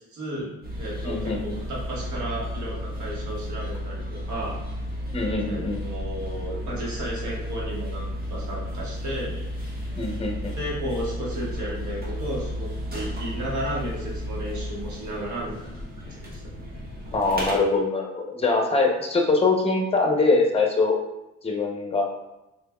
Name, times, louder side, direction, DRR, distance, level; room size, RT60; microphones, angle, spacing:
voice 1, 0.1-0.5 0.8-4.0 4.3-4.6 5.4-9.3 10.6-15.7 16.3-16.4, right 1 dB, 70° right, -4 dB, 1.3 m, -33 dB
sound 1, 0.6-17.5, equal, 30° right, 1.2 m, -33 dB
voice 2, 1.0-1.6 5.1-5.8 10.0-10.5 17.1-21.0 21.4-22.0, left 3 dB, 20° left, 1 dB, 0.7 m, -23 dB
3.8 x 3.3 x 2.3 m, 0.95 s
cardioid pair, 90°, 30 cm